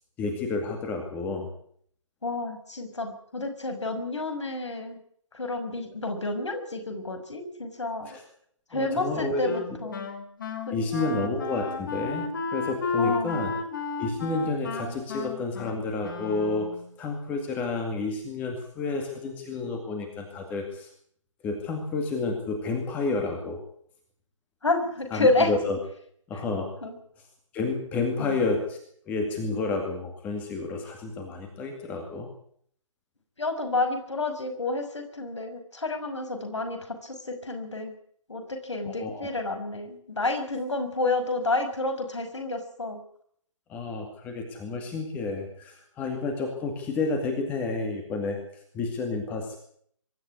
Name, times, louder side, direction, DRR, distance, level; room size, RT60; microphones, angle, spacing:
voice 1, 0.2-1.5 8.1-8.2 8.7-9.5 10.7-13.5 14.0-16.7 17.0-20.9 21.4-23.6 25.1-25.8 26.3-26.7 27.5-28.8 29.1-32.3 38.8-39.3 43.7-48.4 48.7-49.6, left 3 dB, 10° left, 4 dB, 2.2 m, -30 dB
voice 2, 2.2-5.0 5.3-8.2 8.7-10.1 10.7-11.2 13.0-13.6 24.6-25.5 26.8-27.0 28.2-28.4 33.4-37.9 38.3-43.0, left 2 dB, 60° left, 6 dB, 5.8 m, -30 dB
Wind instrument woodwind instrument, 9.4-16.9, left 3 dB, 40° left, 3.5 m, -33 dB
23.0 x 12.5 x 9.7 m, 0.64 s
figure-of-eight pair, 145°, 17 cm